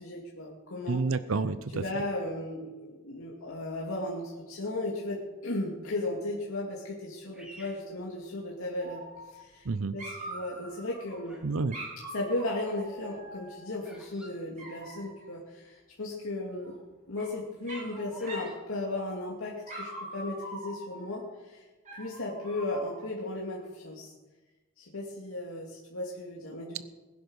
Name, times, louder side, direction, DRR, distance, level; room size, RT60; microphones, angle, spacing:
voice 1, 0.0-1.0 1.7-9.0 9.3-9.7 9.9-11.4 12.1-16.8 17.1-21.6 22.0-24.1 24.8-26.8, left 2 dB, 80° left, -3 dB, 2.5 m, -35 dB
voice 2, 0.9-1.8 9.7-10.0 11.4-11.7, right 4 dB, 75° right, 14 dB, 0.7 m, -29 dB
Bird vocalization bird call bird song, 7.3-8.8 9.5-9.9 10.7-11.6 11.9-15.4 15.6-15.7 15.9-16.3 16.7-18.6, equal, 5° right, 3.3 m, -53 dB
Dog, 8.8-9.7 10.0-11.2 11.7-13.8 14.6-15.3 16.6-17.3 17.7-18.0 18.3-18.6 18.9-19.3 19.7-21.2 21.9-23.1, right 1 dB, 40° right, 6.5 m, -43 dB
20.5 x 10.5 x 6.3 m, 1.2 s
head